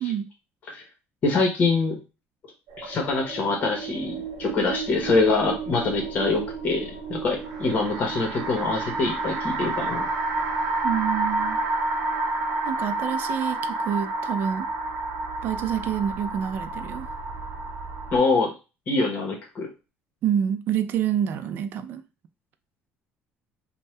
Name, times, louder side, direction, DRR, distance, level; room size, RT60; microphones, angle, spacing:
voice 1, 1.2-2.0 2.8-10.1 18.1-18.5 18.9-19.7, left 3 dB, 40° left, 1.0 m, -24 dB
sound 1, 2.7-18.2, right 2 dB, 80° right, 0.9 m, -30 dB
voice 2, 10.8-11.6 12.7-14.7 15.4-17.1 20.2-22.0, right 9 dB, 55° right, 0.4 m, -27 dB
2.6 x 2.2 x 3.2 m
cardioid pair, 150°, 4 cm